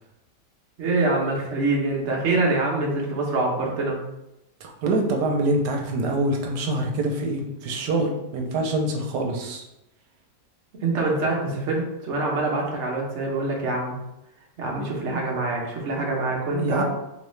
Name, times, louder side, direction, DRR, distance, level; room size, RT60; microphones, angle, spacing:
voice 1, 0.8-4.0 10.8-14.0 14.6-16.8, right 2 dB, 50° right, -1 dB, 1.0 m, -25 dB
voice 2, 4.6-9.6 16.5-16.8, right 2 dB, 85° right, 2 dB, 1.2 m, -25 dB
3.7 x 3.1 x 3.1 m, 0.88 s
omnidirectional pair, 1.8 m